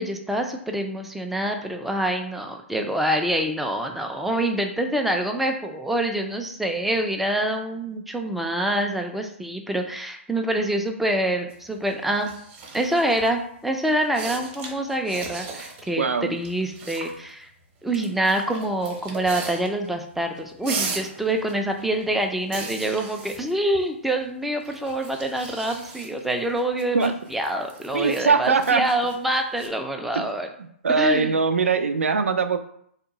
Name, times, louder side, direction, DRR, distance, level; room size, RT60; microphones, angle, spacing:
voice 1, 0.0-12.3 12.7-17.5 17.8-30.5 31.0-31.3, right 1 dB, ahead, 3 dB, 0.3 m, -26 dB
sound 1, 11.5-13.4 13.9-15.9 16.2-17.3 17.9-20.0 20.2-24.3 24.6-29.7, right 4 dB, 25° right, 0.7 m, -38 dB
voice 2, 16.0-16.4 26.9-27.1 27.9-28.8 30.1-30.2 30.8-32.6, right 5 dB, 80° right, 9 dB, 0.4 m, -21 dB
2.8 x 2.2 x 3.8 m, 0.68 s
hypercardioid pair, 125°, 7 cm